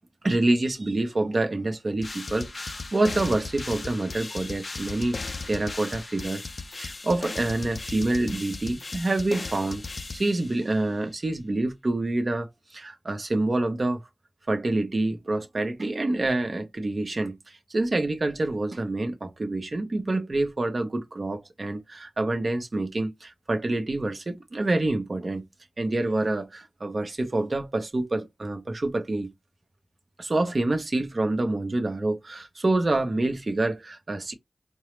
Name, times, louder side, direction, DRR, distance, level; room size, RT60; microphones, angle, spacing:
voice 1, 0.2-6.4 6.7-14.0 14.5-25.4 25.8-29.3 30.2-34.3, right 2 dB, 60° right, 0.8 m, -27 dB
sound 1, 2.0-10.8, left 3 dB, 65° left, 0.4 m, -37 dB
4.4 x 2.0 x 3.2 m
cardioid pair, 40°, 0 cm